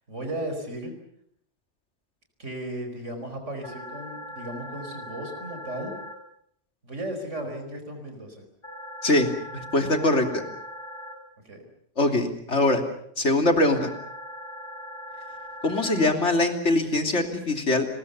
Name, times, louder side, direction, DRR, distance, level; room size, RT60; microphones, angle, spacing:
voice 1, 0.1-0.9 2.4-6.0 6.8-8.4 11.5-11.6, right 1 dB, 80° right, 6 dB, 5.2 m, -35 dB
sound 1, 3.6-6.1 8.6-11.1 13.6-16.1, equal, 45° left, 5.4 m, -40 dB
voice 2, 9.5-10.4 12.0-12.8 13.2-13.9 15.6-17.9, left 2 dB, 70° left, 5 dB, 3.3 m, -22 dB
30.0 x 21.5 x 7.0 m, 0.68 s
omnidirectional pair, 1.2 m